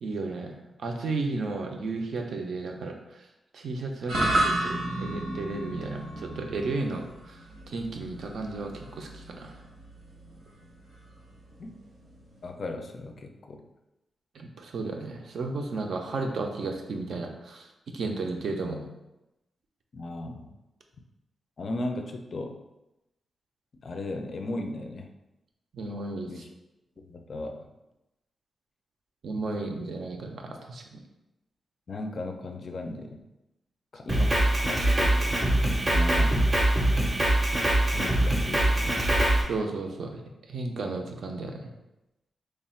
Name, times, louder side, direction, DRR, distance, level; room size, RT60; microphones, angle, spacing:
voice 1, 0.0-3.0 3.5-9.6 14.3-18.9 25.7-26.4 29.2-31.0 39.5-40.2 40.5-41.7, right 3 dB, 60° right, 3 dB, 0.5 m, -34 dB
sound 1, 4.1-12.5, right 1 dB, 80° right, 0.8 m, -33 dB
voice 2, 12.4-13.6 19.9-20.5 21.6-22.6 23.7-25.1 26.3-26.5 27.0-27.7 31.9-33.2 33.9-35.4 35.9-36.5 37.9-39.1, left 2 dB, 40° left, 4 dB, 0.4 m, -36 dB
Drum kit, 34.1-39.4, right 1 dB, 20° right, 0.6 m, -23 dB
3.2 x 2.3 x 4.2 m, 0.95 s
wide cardioid pair, 180°, 0 cm